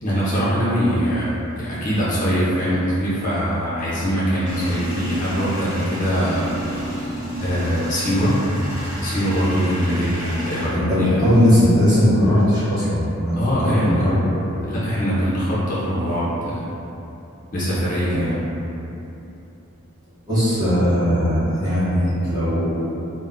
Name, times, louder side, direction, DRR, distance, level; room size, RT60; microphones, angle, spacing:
voice 1, 0.0-7.0 7.4-8.4 9.0-11.2 13.4-14.1 14.6-16.6 17.5-18.4, equal, 35° left, -9 dB, 0.5 m, -22 dB
Male speech man speaking / Vehicle / Engine starting, 4.4-10.7, equal, 35° right, 1.2 m, -30 dB
voice 2, 10.7-14.6 18.1-18.3 20.3-22.7, equal, 15° right, -13 dB, 0.8 m, -19 dB
2.3 x 2.1 x 3.5 m, 2.9 s
head